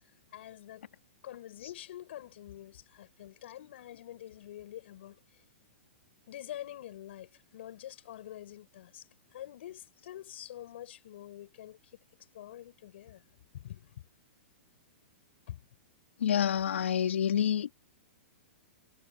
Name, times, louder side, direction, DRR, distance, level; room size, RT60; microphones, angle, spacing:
voice 1, 0.3-0.8 1.2-5.2 6.3-9.1 9.3-12.0 12.3-13.2 13.5-14.0 15.5-15.6, left 12 dB, 65° left, 7.6 m, -46 dB
voice 2, 16.2-17.7, left 9 dB, 80° left, 3.2 m, -28 dB
hypercardioid pair, 140°, 7 cm